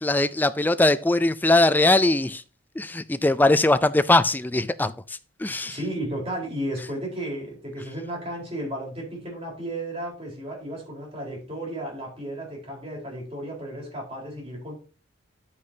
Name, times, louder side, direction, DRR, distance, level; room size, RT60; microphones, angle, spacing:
voice 1, 0.0-2.4 2.8-5.8, left 2 dB, 10° left, 0.4 m, -21 dB
voice 2, 5.6-14.7, right 1 dB, 30° right, 4.2 m, -33 dB
9.9 x 8.5 x 2.8 m
head